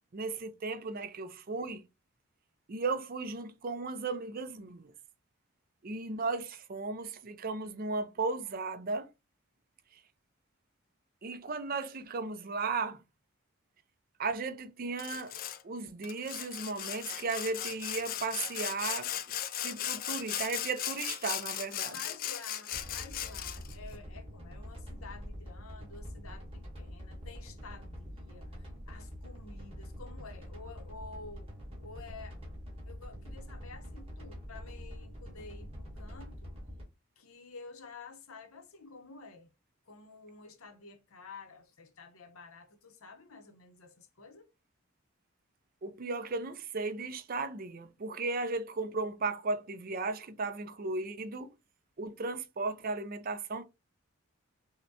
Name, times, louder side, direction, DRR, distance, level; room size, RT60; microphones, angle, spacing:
voice 1, 0.1-1.8 2.7-4.9 5.8-9.1 11.2-13.0 14.2-15.3 15.6-19.1 19.6-22.0 45.8-51.5 52.0-53.6, right 3 dB, 40° right, 0.4 m, -35 dB
Sawing, 15.0-15.6 16.0-23.7, left 11 dB, 40° left, 0.3 m, -37 dB
voice 2, 21.9-31.5 31.8-32.4 32.9-36.5 37.2-39.5 39.9-44.5, left 4 dB, 80° left, 0.8 m, -50 dB
sound 1, 22.7-36.8, equal, 25° right, 1.4 m, -45 dB
5.5 x 2.1 x 2.7 m
head